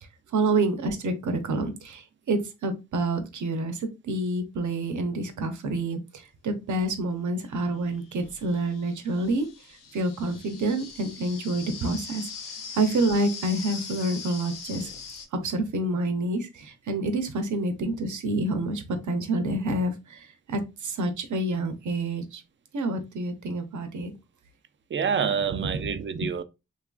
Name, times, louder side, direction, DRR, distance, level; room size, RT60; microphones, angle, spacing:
voice 1, 0.3-9.5 9.9-12.3 12.7-14.9 15.3-22.4 22.7-24.1 25.5-26.3, right 2 dB, 65° right, 0.7 m, -28 dB
sound 1, 6.8-6.9 7.8-15.3, left 5 dB, 85° left, 0.5 m, -41 dB
voice 2, 24.9-26.4, right 7 dB, 40° right, 0.4 m, -27 dB
2.8 x 2.4 x 2.3 m
supercardioid pair, 40°, 32 cm